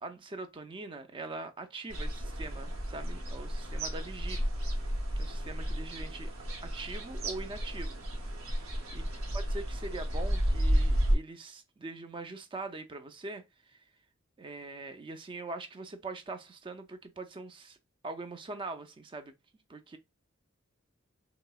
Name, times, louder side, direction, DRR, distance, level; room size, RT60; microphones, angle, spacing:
voice 1, 0.0-4.8 5.2-6.3 6.6-9.1 9.3-13.8 14.4-17.8 18.0-19.3 19.7-20.0, right 3 dB, 25° right, 0.4 m, -43 dB
sound 1, 1.9-11.2, equal, 85° right, 0.8 m, -32 dB
3.6 x 2.0 x 2.3 m
head